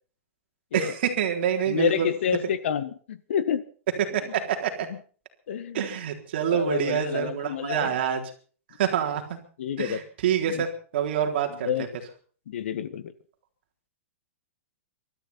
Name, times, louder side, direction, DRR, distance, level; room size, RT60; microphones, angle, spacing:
voice 1, 0.7-2.1 4.1-4.9 5.7-8.2 8.8-9.4 9.8-10.7 10.9-11.7, right 8 dB, 50° right, 4 dB, 3.8 m, -26 dB
voice 2, 1.7-3.6 5.5-5.8 6.4-8.0 9.6-10.0 10.5-10.6 11.6-11.9 12.5-13.1, left 8 dB, 60° left, 14 dB, 1.6 m, -29 dB
24.0 x 13.0 x 4.3 m, 0.41 s
supercardioid pair, 175°, 7 cm